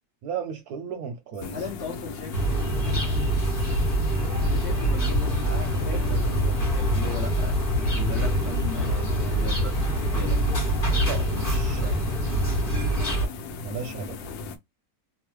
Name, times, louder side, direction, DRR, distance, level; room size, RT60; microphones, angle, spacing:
voice 1, 0.2-1.6 4.3-4.4 10.9-12.0 13.6-14.3, right 6 dB, 70° right, 0.9 m, -35 dB
sound 1, 1.4-14.6, left 4 dB, 80° left, 1.3 m, -38 dB
voice 2, 1.5-2.3 4.4-10.4, left 5 dB, 55° left, 0.8 m, -38 dB
sound 2, 2.3-13.3, right 1 dB, 25° left, 1.0 m, -25 dB
3.1 x 2.0 x 3.1 m
omnidirectional pair, 2.0 m